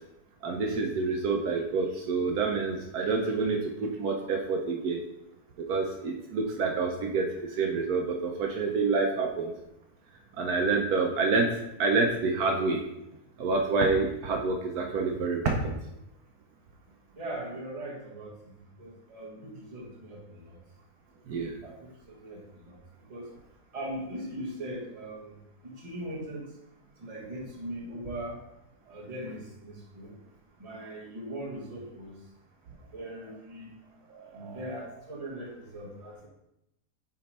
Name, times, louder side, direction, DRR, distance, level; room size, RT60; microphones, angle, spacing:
voice 1, 0.4-5.0 5.7-9.5 10.4-11.5 11.8-12.8 13.4-15.7 21.3-21.6 34.1-34.6, right 4 dB, 70° right, 1 dB, 1.2 m, -28 dB
voice 2, 17.1-18.5 18.8-20.6 21.6-22.8 23.1-23.3 23.7-26.5 27.0-28.4 28.9-30.2 30.6-32.1 32.9-33.7 34.3-36.3, right 1 dB, 25° right, -3 dB, 1.3 m, -40 dB
8.4 x 3.2 x 4.1 m, 0.85 s
omnidirectional pair, 1.7 m